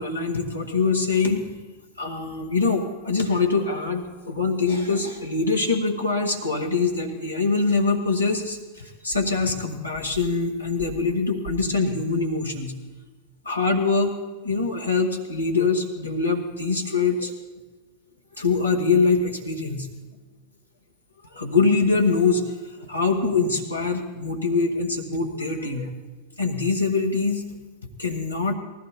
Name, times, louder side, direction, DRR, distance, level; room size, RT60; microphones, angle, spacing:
voice 1, 0.0-1.5 2.0-12.8 13.5-14.2 14.4-17.3 18.4-19.9 21.3-22.4 22.9-25.9 26.4-27.5 28.0-28.5, left 4 dB, 85° left, 1 dB, 1.9 m, -23 dB
19.5 x 15.0 x 4.1 m, 1.2 s
figure-of-eight pair, 90°, 0 cm